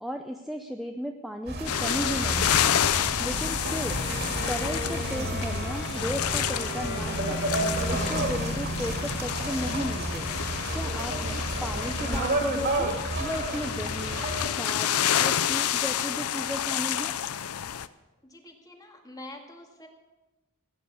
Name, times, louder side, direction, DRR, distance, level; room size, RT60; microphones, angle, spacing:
voice 1, 0.0-2.8 3.2-3.9 4.5-7.5 7.9-10.3 10.7-12.9 13.2-14.2 14.5-17.1, equal, ahead, 4 dB, 0.6 m, -35 dB
sound 1, 1.5-14.5, right 1 dB, 50° right, 2.5 m, -31 dB
sound 2, 1.6-17.9, left 10 dB, 80° left, 0.6 m, -30 dB
Bowed string instrument, 3.8-8.3, left 1 dB, 50° left, 4.3 m, -40 dB
voice 2, 10.9-11.5 18.2-19.9, left 1 dB, 15° left, 3 dB, 1.9 m, -46 dB
16.5 x 9.5 x 7.0 m, 1.1 s
head